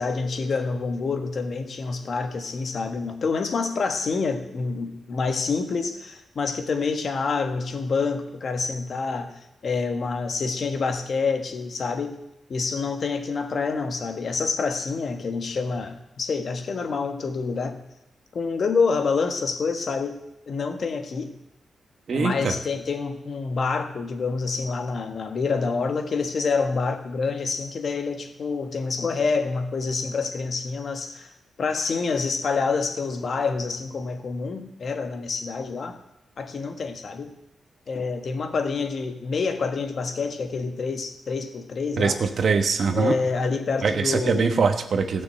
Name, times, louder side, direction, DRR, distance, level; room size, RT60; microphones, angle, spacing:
voice 1, 0.0-9.3 9.6-12.2 12.5-17.8 18.3-21.3 22.1-31.3 31.6-36.0 36.4-37.3 37.9-42.2 42.9-44.6, left 4 dB, 55° left, 7 dB, 1.4 m, -27 dB
voice 2, 22.1-22.6 42.0-43.1 43.8-45.2, right 5 dB, 60° right, 7 dB, 1.1 m, -23 dB
15.5 x 6.2 x 7.7 m, 0.85 s
wide cardioid pair, 120°, 0 cm